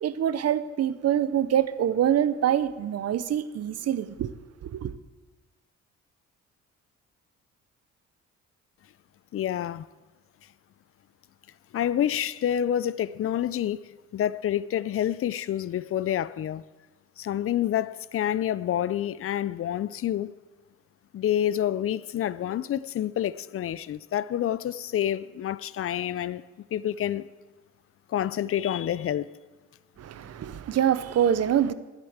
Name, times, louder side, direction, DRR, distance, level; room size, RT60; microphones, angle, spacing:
voice 1, 0.0-4.3 4.6-4.9 30.0-31.7, right 10 dB, 55° right, 0.7 m, -25 dB
voice 2, 9.3-9.8 11.7-16.6 17.2-20.3 21.1-26.4 26.7-27.3 28.1-29.3, left 11 dB, 50° left, 0.5 m, -28 dB
11.0 x 8.2 x 8.0 m
cardioid pair, 90°, 30 cm